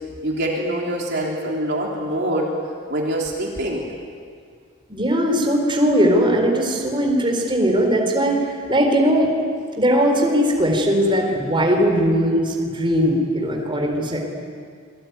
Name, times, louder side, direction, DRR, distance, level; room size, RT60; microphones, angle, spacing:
voice 1, 0.2-2.5 2.9-3.9, right 1 dB, 50° right, -2 dB, 3.4 m, -24 dB
voice 2, 4.9-9.3 9.8-14.2, equal, 20° right, 1 dB, 4.2 m, -19 dB
27.0 x 22.5 x 9.4 m, 2.1 s
head